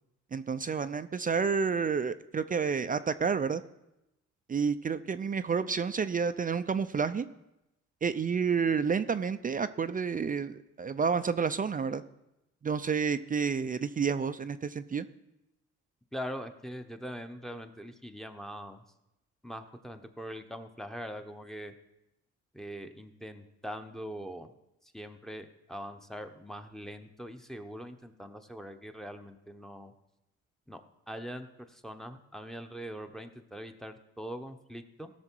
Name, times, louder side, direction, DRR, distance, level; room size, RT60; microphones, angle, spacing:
voice 1, 0.3-3.6 4.5-7.3 8.0-12.0 12.6-15.1, right 6 dB, 30° right, 12 dB, 0.4 m, -30 dB
voice 2, 16.1-18.8 19.4-21.7 22.5-24.5 24.8-29.9 30.7-30.8 31.1-35.1, equal, ahead, 5 dB, 0.8 m, -42 dB
17.0 x 6.4 x 4.6 m, 0.91 s
cardioid pair, 90°, 30 cm